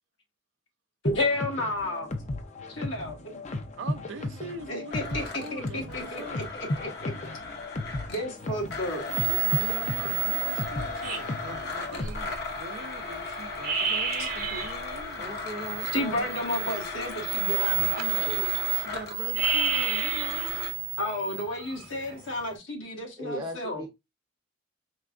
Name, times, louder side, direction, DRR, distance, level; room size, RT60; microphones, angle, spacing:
voice 1, 1.0-2.1 2.7-3.3 4.7-7.1 8.1-9.1 10.3-10.4 15.9-18.5 21.0-23.8, left 1 dB, 80° left, 1.3 m, -32 dB
sound 1, 1.1-12.3, left 2 dB, 35° left, 0.5 m, -36 dB
voice 2, 3.8-6.4 9.3-15.3 18.7-20.6, right 3 dB, 70° right, 0.6 m, -42 dB
Domestic sounds home sounds, 4.9-8.3 8.7-20.7, left 3 dB, 55° left, 0.9 m, -36 dB
sound 2, 8.4-8.8 9.1-12.6 13.0-13.1 13.4-14.8 15.2-22.5, right 10 dB, 50° right, 0.9 m, -30 dB
voice 3, 15.2-16.2 22.3-22.4 23.2-23.9, equal, 20° right, 0.7 m, -38 dB
4.5 x 3.2 x 2.5 m
head